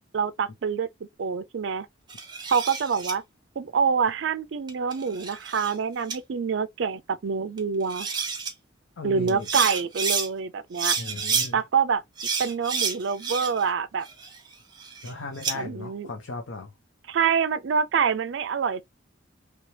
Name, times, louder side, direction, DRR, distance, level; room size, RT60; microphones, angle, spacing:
voice 1, 0.1-0.9 1.2-1.9 2.5-3.2 3.6-8.1 9.0-11.0 11.5-12.0 12.4-14.1 15.5-16.1 17.1-18.8, right 6 dB, 60° right, 0.4 m, -26 dB
sound 1, 2.1-3.1 4.7-5.7 6.1-6.2 7.6-7.7 7.9-8.5 9.3-10.3 10.7-11.5 12.2-13.7 14.0-15.5, right 6 dB, 20° right, 0.8 m, -29 dB
voice 2, 9.0-9.5 11.0-11.6 15.0-16.7, left 2 dB, 75° left, 0.7 m, -36 dB
3.3 x 3.2 x 2.8 m
head